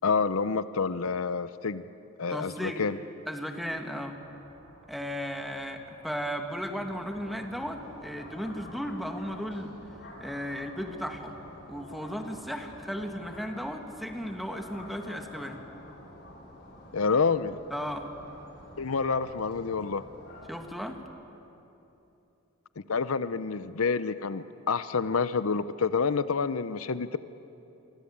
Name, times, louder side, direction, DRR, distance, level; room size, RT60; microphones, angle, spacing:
voice 1, 0.0-1.9 2.2-3.0 16.9-17.6 18.8-20.0 22.9-27.2, left 5 dB, 80° left, 14 dB, 0.7 m, -28 dB
voice 2, 2.3-2.9 3.3-4.2 4.9-9.7 10.2-11.4 11.7-15.6 17.7-18.1 20.5-21.0, equal, ahead, 4 dB, 1.9 m, -35 dB
sound 1, 3.5-15.0, right 1 dB, 65° right, 5.9 m, -56 dB
sound 2, 6.8-20.7, left 1 dB, 55° left, 6.5 m, -48 dB
27.0 x 24.0 x 8.7 m, 2.9 s
head